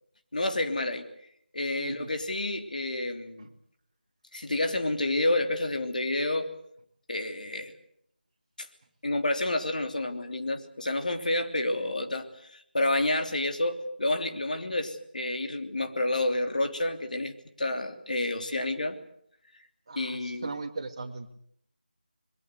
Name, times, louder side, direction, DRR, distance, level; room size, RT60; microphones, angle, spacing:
voice 1, 0.3-1.1 1.5-3.5 4.3-6.5 7.1-7.7 8.6-8.7 9.0-17.3 17.6-19.0 19.9-20.5, left 2 dB, 50° left, 6 dB, 3.2 m, -29 dB
voice 2, 1.8-2.1 19.9-21.3, right 3 dB, 30° right, 2 dB, 2.1 m, -38 dB
24.0 x 22.5 x 8.1 m, 0.68 s
figure-of-eight pair, 165°, 5 cm